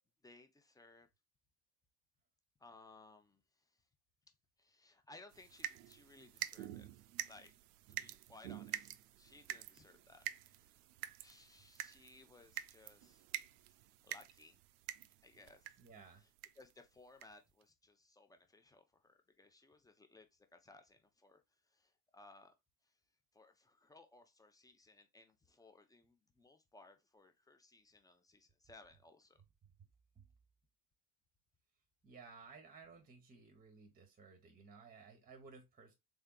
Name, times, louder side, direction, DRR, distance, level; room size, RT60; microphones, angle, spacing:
voice 1, 0.2-1.1 2.6-3.4 4.6-7.5 7.9-10.8 11.2-13.2 14.0-14.6 15.2-15.8 16.6-21.4 21.7-22.5 23.3-29.4, left 2 dB, 10° left, 0.7 m, -62 dB
sound 1, 5.3-15.9 16.4-16.7 17.2-17.3 17.6-17.7, right 13 dB, 75° right, 0.5 m, -47 dB
voice 2, 15.8-16.2 30.1-30.3 32.0-35.9, right 4 dB, 20° right, 1.0 m, -57 dB
3.5 x 3.4 x 2.2 m
hypercardioid pair, 75°, 47 cm